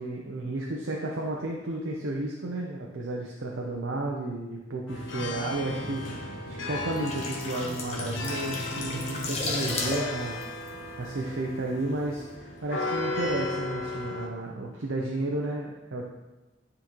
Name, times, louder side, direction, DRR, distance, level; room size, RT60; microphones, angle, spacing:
voice 1, 0.0-16.0, right 2 dB, 85° right, -1 dB, 0.7 m, -33 dB
sound 1, 4.9-14.3, left 2 dB, 80° left, 0.8 m, -35 dB
sound 2, 6.8-11.6 11.9-12.1, left 2 dB, 35° left, 0.9 m, -35 dB
9.6 x 3.8 x 3.0 m, 1.1 s
head